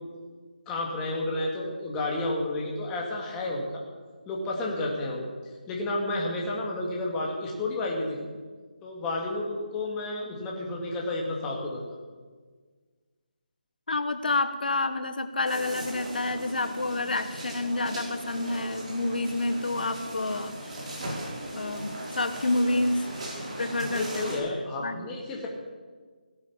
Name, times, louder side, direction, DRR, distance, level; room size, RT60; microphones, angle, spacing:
voice 1, 0.7-3.8 4.3-5.3 5.7-8.2 8.8-11.8 23.9-25.5, left 2 dB, 10° left, -2 dB, 2.1 m, -31 dB
voice 2, 13.9-20.8 21.5-23.1 23.6-24.4 24.8-25.0, left 2 dB, 75° left, 10 dB, 1.2 m, -29 dB
sound 1, 15.4-24.4, right 1 dB, 45° right, 5.3 m, -38 dB
17.0 x 11.0 x 7.2 m, 1.5 s
figure-of-eight pair, 165°, 5 cm